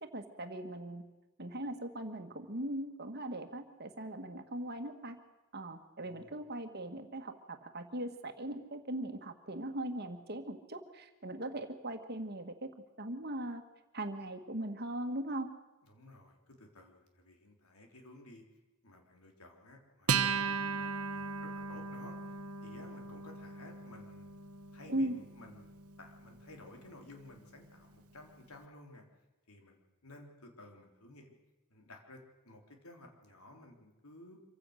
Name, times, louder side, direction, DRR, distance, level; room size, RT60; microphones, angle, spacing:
voice 1, 0.0-1.0 1.4-5.2 5.5-12.7 13.0-13.6 13.9-15.5 24.9-25.2, right 1 dB, 45° right, 7 dB, 1.7 m, -39 dB
voice 2, 6.0-6.4 15.8-18.4 18.8-22.2 22.6-24.3 24.7-25.7 26.0-29.1 29.5-31.4 31.7-34.4, left 2 dB, 85° left, 3 dB, 3.4 m, -55 dB
Acoustic guitar, 20.1-26.9, right 5 dB, 85° right, 1.2 m, -37 dB
25.5 x 16.0 x 6.5 m, 1.1 s
head